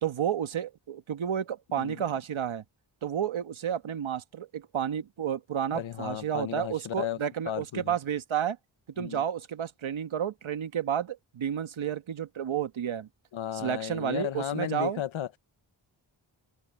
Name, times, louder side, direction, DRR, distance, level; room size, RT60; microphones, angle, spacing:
voice 1, 0.0-2.6 3.0-8.6 9.0-13.1 13.5-15.0, right 9 dB, 80° right, 1.4 m, -31 dB
voice 2, 1.8-2.1 5.7-7.2 7.5-7.9 9.0-9.2 13.3-15.4, left 10 dB, 80° left, 1.0 m, -34 dB
open air
wide cardioid pair, 85°, 47 cm